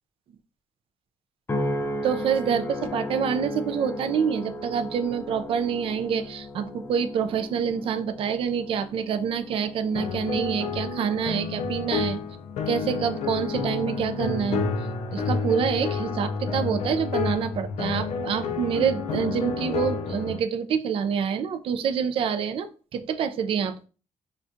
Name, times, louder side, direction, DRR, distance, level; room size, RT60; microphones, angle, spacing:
sound 1, 1.5-16.0 16.5-16.9, left 1 dB, 20° left, 0.4 m, -37 dB
voice 1, 2.0-12.2 12.7-14.7 15.1-23.9, right 7 dB, 50° right, 9 dB, 0.4 m, -27 dB
sound 2, 9.9-20.4, left 5 dB, 70° left, 0.5 m, -30 dB
4.9 x 2.2 x 2.6 m, 0.36 s
cardioid pair, 150°, 12 cm